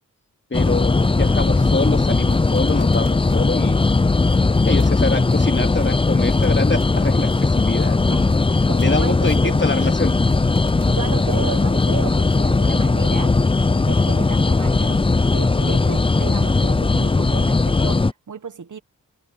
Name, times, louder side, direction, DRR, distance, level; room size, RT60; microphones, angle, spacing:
voice 1, 0.5-3.8 4.6-8.2 8.8-10.1, left 3 dB, 35° left, 2.6 m, -25 dB
sound 1, 0.5-18.1, left 3 dB, 15° left, 0.5 m, -18 dB
voice 2, 1.0-1.7 8.1-8.3 8.7-9.6 10.9-13.4 13.8-18.8, right 6 dB, 60° right, 1.4 m, -33 dB
sound 2, 1.8-12.6, right 6 dB, 85° right, 3.8 m, -52 dB
cardioid pair, 50°, 34 cm